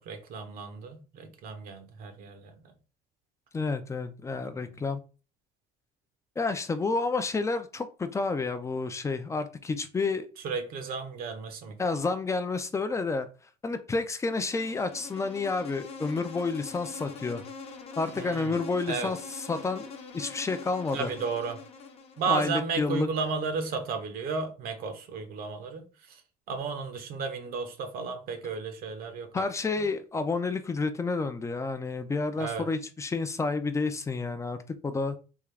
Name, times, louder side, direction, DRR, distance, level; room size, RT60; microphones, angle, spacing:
voice 1, 0.0-2.6 4.5-4.7 10.4-11.7 18.2-18.5 18.9-19.1 20.9-21.6 22.2-26.2 26.5-29.5 29.8-29.9 32.4-32.7, right 5 dB, 60° right, 0.8 m, -33 dB
voice 2, 3.5-5.0 6.4-10.3 11.8-13.3 13.6-17.4 18.0-19.9 20.1-21.1 22.3-23.1 29.3-35.2, left 3 dB, 15° left, 0.4 m, -30 dB
Insect, 14.3-22.5, left 5 dB, 35° left, 0.8 m, -44 dB
3.6 x 2.4 x 3.2 m
cardioid pair, 115°, 17 cm